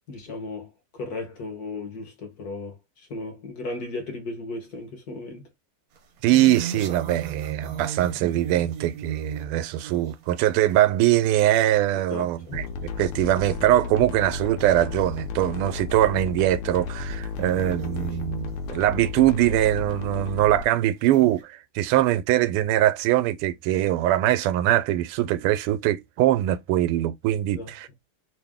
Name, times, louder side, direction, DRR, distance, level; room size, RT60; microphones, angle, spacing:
voice 1, 0.1-5.5 12.1-12.6 27.5-27.7, left 2 dB, 50° left, 1.4 m, -36 dB
sound 1, 6.0-11.0 11.5-11.9 12.3-12.4 12.7-12.8 13.2-13.3 14.6-14.7 15.7-15.9 16.5-16.6 16.9-18.5 19.1-19.6 20.3-20.4 21.0-21.4, right 7 dB, 60° right, 0.9 m, -37 dB
voice 2, 6.2-21.4 21.7-27.9, right 13 dB, 90° right, 1.5 m, -22 dB
sound 2, 12.5-20.6, left 4 dB, 85° left, 1.6 m, -33 dB
3.6 x 2.6 x 3.5 m
omnidirectional pair, 2.4 m